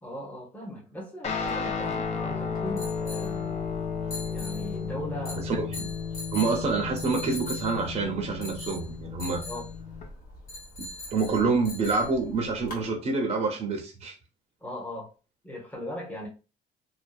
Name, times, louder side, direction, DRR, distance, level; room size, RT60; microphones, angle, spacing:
voice 1, 0.0-3.7 4.3-5.5 9.5-9.7 14.6-15.1 15.4-16.3, equal, 10° left, 0.8 m, -38 dB
Guitar, 1.2-10.0, left 6 dB, 40° left, 0.6 m, -33 dB
sound 1, 1.3-12.8, left 2 dB, 55° left, 1.2 m, -42 dB
voice 2, 5.4-5.9 6.3-9.4 10.8-14.1, right 4 dB, 35° right, 0.6 m, -27 dB
2.6 x 2.1 x 2.3 m
cardioid pair, 110°, 17 cm